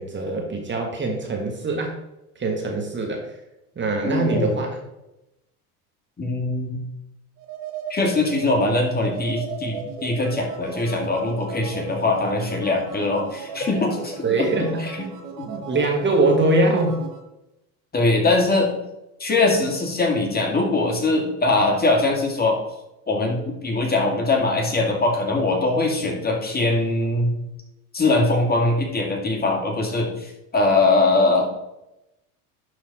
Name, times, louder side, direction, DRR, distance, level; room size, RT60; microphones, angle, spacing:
voice 1, 0.0-2.0 2.3-3.3 3.7-4.8 14.2-14.9 15.5-17.0, right 2 dB, 25° right, 1 dB, 1.7 m, -23 dB
voice 2, 4.0-4.5 6.2-6.8 7.9-14.2 14.8-15.0 15.4-15.5 17.9-18.7 19.2-22.6 23.1-27.3 27.9-31.5, left 2 dB, 20° left, 0 dB, 2.2 m, -22 dB
sound 1, 7.4-17.2, right 5 dB, 60° right, 1.9 m, -36 dB
11.5 x 4.2 x 4.2 m, 0.90 s
hypercardioid pair, 90°, 44 cm